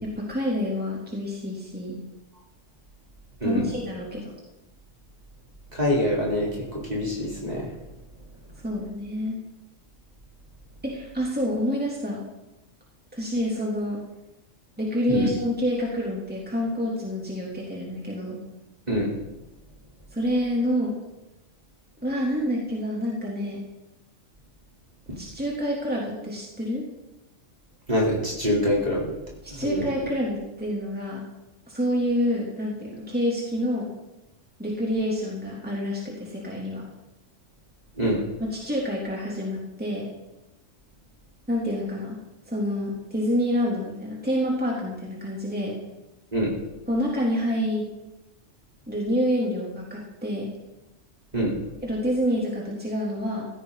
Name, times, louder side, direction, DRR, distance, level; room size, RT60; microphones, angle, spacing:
voice 1, 0.0-2.0 3.4-4.3 8.6-9.4 10.8-12.2 13.1-14.0 14.8-18.4 20.1-20.9 22.0-23.6 25.1-26.8 29.4-31.2 31.7-33.9 34.6-36.9 38.5-40.1 41.5-42.2 42.5-45.8 46.9-47.9 48.9-50.5 51.8-53.5, equal, 5° right, -4 dB, 3.5 m, -27 dB
voice 2, 5.7-7.7 15.1-15.3 18.9-19.1 27.9-29.1 29.6-29.9 38.0-38.2 46.3-46.5 51.3-51.5, equal, 30° right, -4 dB, 4.2 m, -25 dB
16.5 x 16.0 x 4.2 m, 0.98 s
omnidirectional pair, 1.3 m